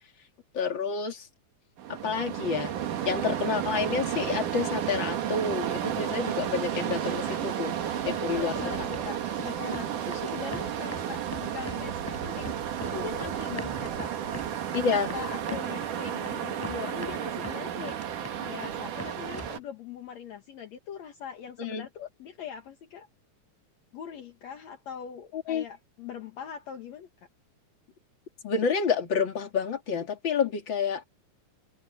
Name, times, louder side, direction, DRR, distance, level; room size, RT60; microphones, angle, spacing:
voice 1, 0.5-1.3 1.9-2.7 3.0-7.8 8.0-8.5 14.7-15.1 21.6-21.9 25.3-25.6 28.4-31.0, left 5 dB, 40° left, 3.2 m, -29 dB
waves beach nighttime, 1.8-19.6, right 9 dB, 85° right, 3.4 m, -32 dB
sound 1, 3.9-8.8, right 5 dB, 35° right, 4.5 m, -49 dB
voice 2, 8.0-14.5 15.1-18.0 18.4-23.1 23.9-27.3, left 8 dB, 65° left, 2.6 m, -41 dB
sound 2, 8.1-8.3 8.6-9.1 9.4-9.9 10.1-11.1 11.3-11.8 12.1-12.9 13.2-15.9 16.2-16.4 16.6-17.6 17.9-18.7 19.0-19.6, equal, 5° left, 4.2 m, -41 dB
omnidirectional pair, 3.5 m